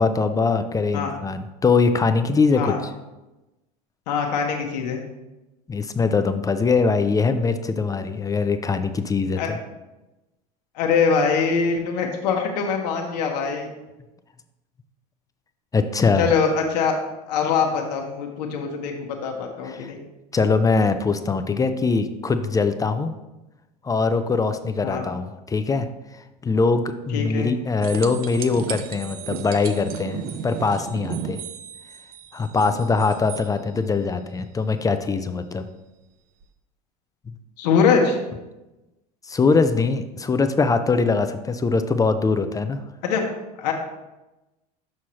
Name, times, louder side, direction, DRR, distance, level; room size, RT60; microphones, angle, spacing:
voice 1, 0.0-2.7 5.7-9.6 15.7-16.3 19.6-19.9 20.3-23.1 23.8-25.9 26.4-31.4 32.3-35.7 39.2-42.8, left 4 dB, 15° left, 9 dB, 0.4 m, -22 dB
voice 2, 4.1-5.0 9.4-9.5 10.7-13.7 16.2-16.9 17.3-20.0 24.8-25.1 27.1-27.5 37.6-38.2 43.0-43.3 43.6-43.7, left 5 dB, 80° left, 2 dB, 0.9 m, -23 dB
sound 1, 27.8-33.5 36.4-36.5, right 8 dB, 45° right, 0.6 m, -35 dB
6.3 x 5.9 x 2.9 m, 1.0 s
hypercardioid pair, 90°, 21 cm